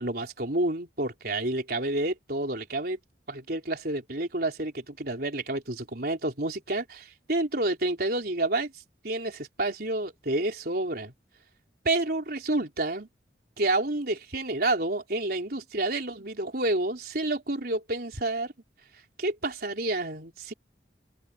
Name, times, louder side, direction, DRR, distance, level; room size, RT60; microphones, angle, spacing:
voice 1, 0.0-3.0 3.3-8.7 9.0-11.1 11.8-13.1 13.6-18.5 19.2-20.5, right 2 dB, 60° right, 4.3 m, -29 dB
open air
head